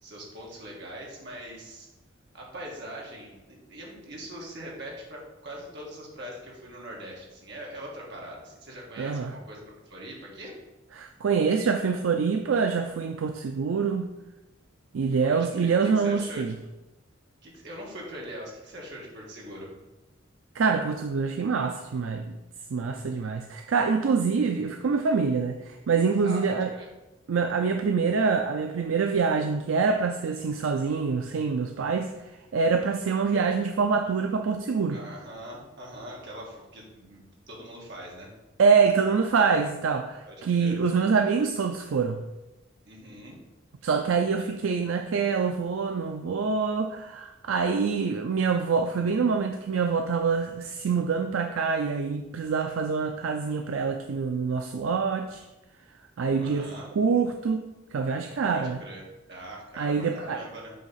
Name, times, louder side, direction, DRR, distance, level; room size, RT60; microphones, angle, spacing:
voice 1, 0.0-1.9 2.3-10.6 15.2-16.5 17.4-19.7 26.2-26.9 34.9-38.3 40.2-40.8 42.9-43.4 44.3-44.5 56.4-56.9 58.5-60.7, right 1 dB, 60° right, -2 dB, 1.8 m, -42 dB
voice 2, 9.0-9.3 10.9-14.1 14.9-16.5 20.5-22.4 22.7-26.7 27.3-32.1 32.5-35.0 38.6-42.2 43.8-55.4 56.2-56.7 57.0-57.7 57.9-58.8 59.8-60.4, right 5 dB, 80° right, 6 dB, 0.4 m, -25 dB
7.7 x 3.2 x 5.6 m, 1.0 s
head